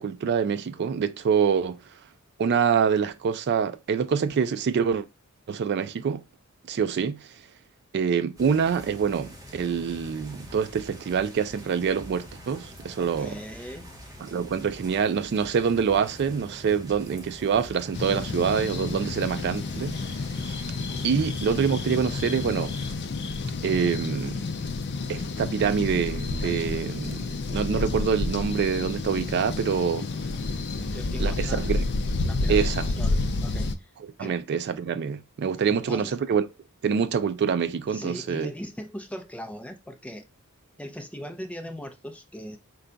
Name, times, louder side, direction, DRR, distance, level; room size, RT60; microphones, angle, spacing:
voice 1, 0.0-1.8 2.4-5.1 5.5-6.2 6.7-7.3 7.9-13.4 14.2-20.2 20.4-20.6 21.0-22.7 23.6-24.4 25.1-30.1 31.2-31.8 32.5-32.9 34.2-36.4 36.8-38.5, right 6 dB, 50° right, 0.3 m, -26 dB
sound 1, 8.4-22.9, equal, 15° right, 1.0 m, -45 dB
voice 2, 13.0-13.9 20.7-21.0 22.4-22.6 30.1-30.4 30.8-31.7 32.2-33.9 34.2-34.5 35.6-36.2 37.9-40.3 40.8-42.6, equal, 5° left, 0.5 m, -40 dB
sound 2, 17.9-33.7, left 3 dB, 55° left, 0.5 m, -30 dB
4.5 x 2.3 x 3.8 m
head